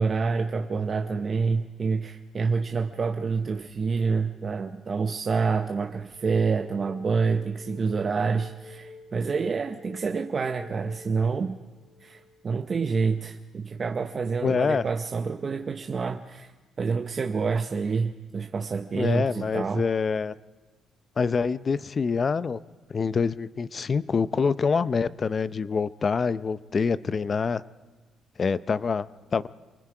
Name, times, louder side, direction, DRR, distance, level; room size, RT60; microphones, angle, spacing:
voice 1, 0.0-11.6 12.0-16.5 16.8-19.9, right 5 dB, 40° right, 5 dB, 0.8 m, -27 dB
sound 1, 5.8-13.5, left 3 dB, 70° left, 6.4 m, -49 dB
voice 2, 14.4-14.8 18.9-20.3 21.2-22.6 22.9-27.6 28.4-29.5, left 5 dB, 40° left, 17 dB, 0.6 m, -26 dB
27.5 x 20.0 x 4.9 m, 1.3 s
cardioid pair, 90°, 0 cm